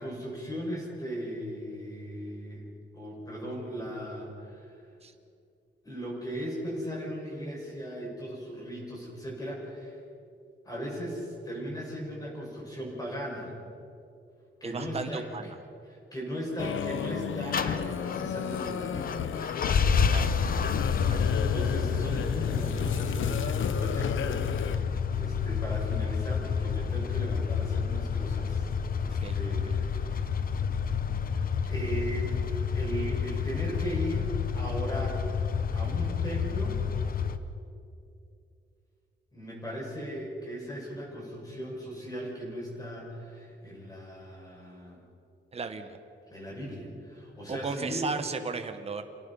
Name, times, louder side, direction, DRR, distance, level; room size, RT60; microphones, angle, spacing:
voice 1, 0.0-2.7 2.9-4.9 5.8-10.0 10.6-13.5 14.6-15.6 15.9-19.3 21.0-30.3 31.6-32.4 32.6-34.3 34.5-35.3 35.7-36.8 39.3-45.0 46.3-48.0, equal, 20° left, -3 dB, 6.0 m, -38 dB
voice 2, 14.6-15.6 20.1-20.3 21.1-21.4 29.2-29.4 45.5-46.0 47.5-49.0, right 4 dB, 30° right, 7 dB, 1.1 m, -35 dB
sound 1, 16.6-24.8, left 8 dB, 80° left, 0.8 m, -34 dB
sound 2, 17.5-37.4, left 6 dB, 45° left, 0.9 m, -29 dB
28.0 x 18.0 x 5.6 m, 2.6 s
wide cardioid pair, 170°, 20 cm